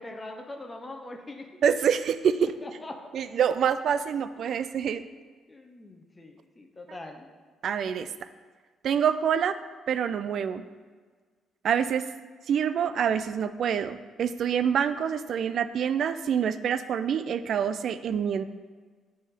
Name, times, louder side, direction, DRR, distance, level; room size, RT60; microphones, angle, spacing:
voice 1, 0.0-1.4 2.6-2.9 5.5-7.2, left 2 dB, 20° left, 3 dB, 0.7 m, -42 dB
voice 2, 1.6-2.5 3.1-5.0 7.6-8.1 8.8-9.6 9.9-10.6 11.6-12.0 12.5-18.4, right 8 dB, 65° right, 13 dB, 0.3 m, -26 dB
9.3 x 3.4 x 3.6 m, 1.5 s
cardioid pair, 90°, 0 cm